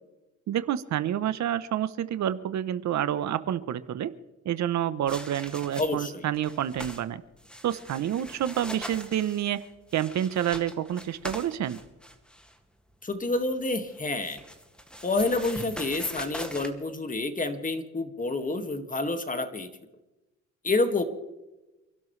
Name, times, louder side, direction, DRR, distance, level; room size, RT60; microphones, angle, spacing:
voice 1, 0.5-4.1 4.4-7.2 7.6-9.6 9.9-11.8, right 10 dB, 65° right, 14 dB, 0.9 m, -28 dB
sound 1, 5.1-6.1 6.3-7.0 7.4-12.6 13.9-16.7, equal, 5° left, 2.1 m, -42 dB
voice 2, 5.8-6.3 13.0-14.4 15.0-19.7 20.6-21.0, left 2 dB, 25° left, 7 dB, 2.0 m, -28 dB
29.5 x 12.0 x 3.3 m, 1.0 s
cardioid pair, 90°, 30 cm